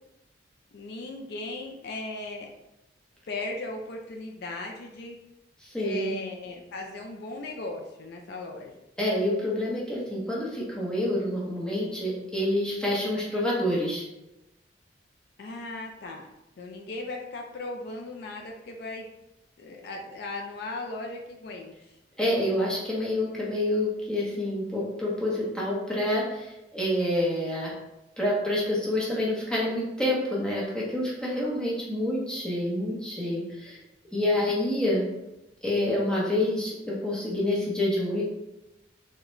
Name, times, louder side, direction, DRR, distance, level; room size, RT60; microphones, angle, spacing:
voice 1, 0.7-2.5 3.3-5.2 5.8-8.8 15.4-16.3 16.6-19.1 19.6-21.9 34.2-34.3, left 2 dB, 60° left, 2 dB, 0.4 m, -37 dB
voice 2, 5.6-6.1 9.0-14.0 22.2-27.7 28.2-33.8 34.1-35.0 35.6-38.2, left 1 dB, 5° left, -6 dB, 0.8 m, -27 dB
3.7 x 2.1 x 3.0 m, 0.94 s
head